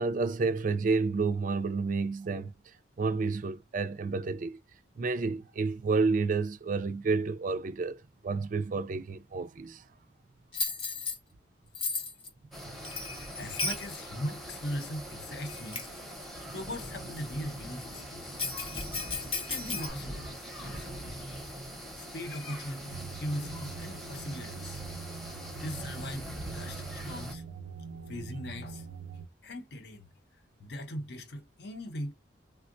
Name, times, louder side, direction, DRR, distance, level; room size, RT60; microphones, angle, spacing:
voice 1, 0.0-4.6 5.0-9.8 12.6-12.7, right 4 dB, 45° right, 0.4 m, -30 dB
Bell, 10.5-11.2 11.7-12.3 12.8-13.9 14.8-14.9 15.5-16.0 18.4-19.9, left 4 dB, 30° left, 0.7 m, -34 dB
sound 1, 12.5-27.4, equal, ahead, 0.7 m, -42 dB
voice 2, 13.3-15.9 16.5-18.4 19.5-21.1 22.0-24.8 25.2-27.4 28.1-29.0 29.4-30.1 30.6-32.1, left 1 dB, 60° left, 0.7 m, -40 dB
sound 2, 22.9-29.3, right 5 dB, 90° right, 0.6 m, -43 dB
3.5 x 2.1 x 2.5 m
head